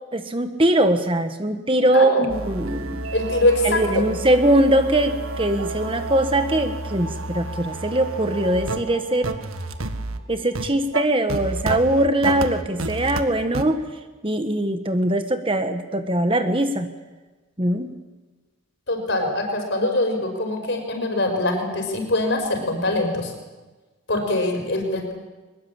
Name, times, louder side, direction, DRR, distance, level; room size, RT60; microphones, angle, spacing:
voice 1, 0.1-3.0 3.6-9.3 10.3-13.8 14.2-16.9 17.6-17.9, right 1 dB, 25° right, 8 dB, 1.3 m, -21 dB
voice 2, 1.9-2.3 3.1-4.1 18.9-23.3 24.1-25.1, left 2 dB, 55° left, 4 dB, 5.6 m, -23 dB
sound 1, 2.3-13.2 13.5-13.6, right 2 dB, 85° right, 1.7 m, -30 dB
23.0 x 21.0 x 8.7 m, 1.2 s
head